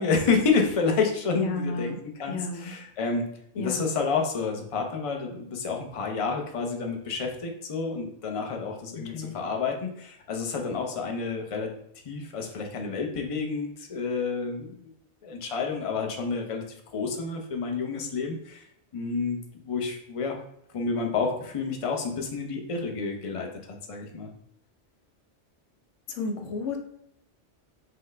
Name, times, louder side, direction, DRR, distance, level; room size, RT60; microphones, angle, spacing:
voice 1, 0.0-3.2 3.5-11.7 12.1-14.9 15.2-16.6 16.9-18.6 18.9-19.4 19.6-20.4 20.7-24.3, left 4 dB, 40° left, 2 dB, 0.5 m, -29 dB
voice 2, 1.4-2.0 2.3-2.7 3.5-3.8 9.0-9.4 26.1-26.8, left 3 dB, 85° left, 4 dB, 1.0 m, -32 dB
5.7 x 2.2 x 3.2 m, 0.75 s
omnidirectional pair, 1.2 m